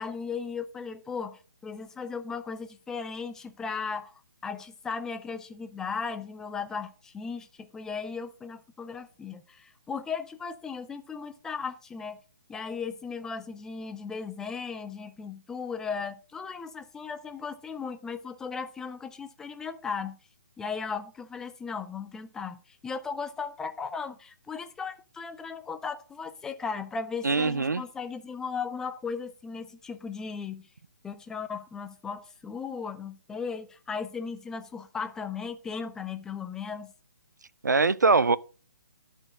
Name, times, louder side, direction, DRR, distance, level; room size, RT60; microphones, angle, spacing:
voice 1, 0.0-4.1 4.4-12.2 12.5-20.2 20.6-30.7 31.0-36.9, left 5 dB, 5° left, 0.4 m, -36 dB
voice 2, 27.2-27.8 37.6-38.4, right 4 dB, 75° right, 0.5 m, -22 dB
11.5 x 4.4 x 4.9 m
figure-of-eight pair, 135°, 10 cm